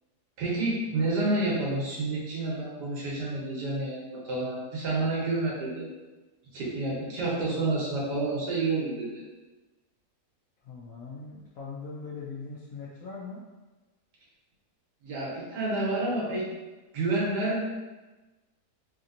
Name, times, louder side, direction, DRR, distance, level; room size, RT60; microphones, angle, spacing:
voice 1, 0.4-5.9 6.5-9.2 15.0-16.5 16.9-17.6, right 2 dB, 90° right, -5 dB, 1.5 m, -29 dB
voice 2, 10.6-13.4, left 4 dB, 70° left, -5 dB, 0.9 m, -41 dB
3.4 x 2.7 x 2.5 m, 1.2 s
omnidirectional pair, 1.7 m